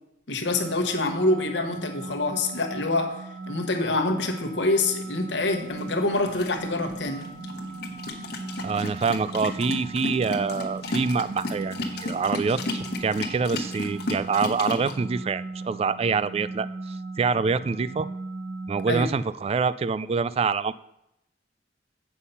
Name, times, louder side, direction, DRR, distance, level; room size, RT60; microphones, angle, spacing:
voice 1, 0.3-7.3 18.9-19.1, left 2 dB, 80° left, 4 dB, 1.2 m, -26 dB
sound 1, 0.5-19.0, right 3 dB, 55° right, 0.8 m, -38 dB
sound 2, 5.4-14.9, left 2 dB, 60° left, 1.2 m, -34 dB
voice 2, 8.6-18.1 18.7-20.7, right 5 dB, 35° right, 17 dB, 0.3 m, -26 dB
8.2 x 5.7 x 5.5 m, 0.83 s
head